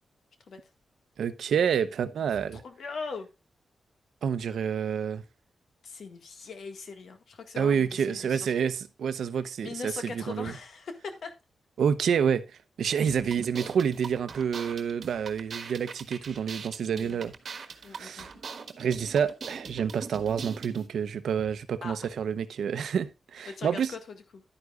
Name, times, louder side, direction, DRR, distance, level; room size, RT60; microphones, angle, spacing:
voice 1, 1.2-2.6 4.2-5.2 7.6-10.5 11.8-12.5 12.8-17.3 17.9-18.3 18.8-23.9, right 7 dB, 85° right, 0.8 m, -28 dB
voice 2, 2.5-3.3 5.8-8.5 9.6-11.3 16.9-17.3 17.8-18.3 21.8-22.1 23.5-24.4, left 4 dB, 65° left, 1.8 m, -40 dB
sound 1, 13.1-20.9, right 5 dB, 50° right, 1.3 m, -42 dB
11.0 x 9.6 x 2.4 m
wide cardioid pair, 165°, 0 cm